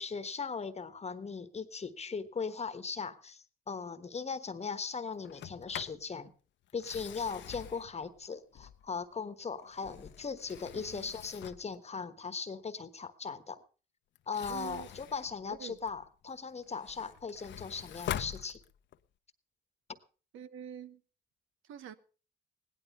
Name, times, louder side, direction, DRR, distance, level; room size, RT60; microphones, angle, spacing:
voice 1, 0.0-6.3 6.7-13.6 14.3-18.6, left 5 dB, 35° left, 1.2 m, -39 dB
Sliding door, 5.2-6.0 6.7-9.0 9.6-11.7 14.1-16.1 16.6-19.1, left 11 dB, 65° left, 0.8 m, -44 dB
voice 2, 10.7-11.1 14.5-14.9 15.5-15.8 20.3-21.0 21.6-21.9, right 8 dB, 80° right, 1.1 m, -46 dB
17.0 x 11.5 x 5.5 m
cardioid pair, 90°, 20 cm